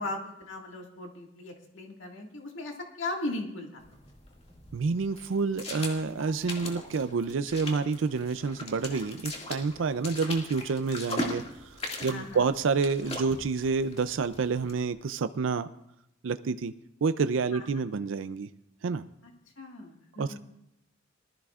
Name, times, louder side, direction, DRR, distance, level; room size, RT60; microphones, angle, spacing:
voice 1, 0.0-3.8 12.1-12.4 17.5-17.6 19.2-20.4, left 2 dB, 70° left, 1 dB, 1.9 m, -38 dB
sound 1, 3.8-14.8, left 1 dB, 30° left, 2.1 m, -40 dB
voice 2, 4.7-15.7 16.2-16.7 17.0-18.5 18.8-19.0 20.2-20.4, right 4 dB, 70° right, 11 dB, 0.4 m, -29 dB
20.0 x 13.5 x 2.4 m, 0.80 s
head